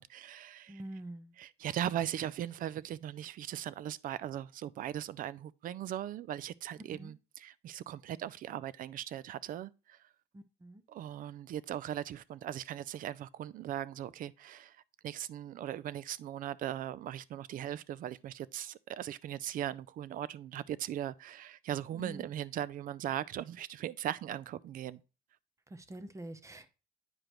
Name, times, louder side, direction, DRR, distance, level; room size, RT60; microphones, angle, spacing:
voice 1, 0.0-0.8 1.4-10.0 10.9-14.8 15.0-25.0, right 11 dB, 55° right, 0.4 m, -39 dB
voice 2, 0.7-1.3 6.9-7.1 10.3-10.8 21.9-22.3 25.7-26.7, right 1 dB, 15° right, 0.7 m, -46 dB
8.9 x 4.9 x 3.0 m
cardioid pair, 110°, 17 cm